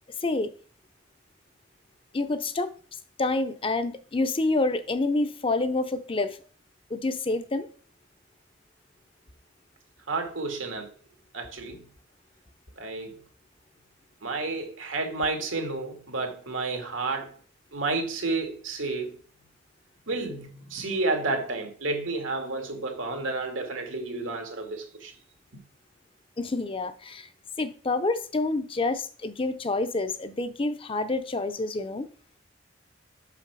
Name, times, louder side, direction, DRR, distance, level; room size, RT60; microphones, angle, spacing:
voice 1, 2.1-2.7 3.2-6.4 6.9-7.7 26.4-27.3 27.6-32.1, left 2 dB, 30° left, 0.6 m, -28 dB
voice 2, 10.1-10.9 11.3-11.8 12.8-13.2 14.2-17.3 17.7-19.2 20.1-25.1, right 3 dB, 85° right, 2.0 m, -31 dB
5.8 x 5.4 x 6.1 m
head